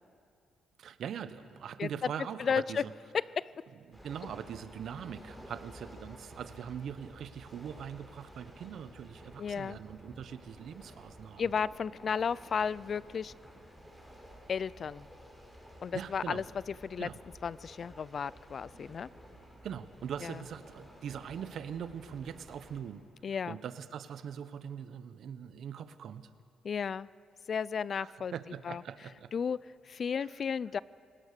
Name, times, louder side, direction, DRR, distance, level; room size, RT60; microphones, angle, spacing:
voice 1, 0.8-2.9 3.9-11.5 15.9-16.4 17.0-17.2 19.6-23.0 23.5-26.3 28.0-29.3 30.2-30.3, right 8 dB, 65° right, 12 dB, 1.0 m, -42 dB
voice 2, 1.8-2.1 2.4-2.8 3.4-3.5 9.4-9.8 11.4-13.3 14.5-15.1 15.8-16.4 16.8-17.1 17.4-19.1 20.2-20.4 23.2-23.6 26.6-27.1 27.5-28.3 28.6-28.8 29.3-29.6 29.8-30.8, left 6 dB, 50° left, 20 dB, 0.4 m, -33 dB
sound 1, 3.9-22.8, equal, 5° left, 6.1 m, -53 dB
29.0 x 18.0 x 6.7 m, 2.4 s
cardioid pair, 90°, 0 cm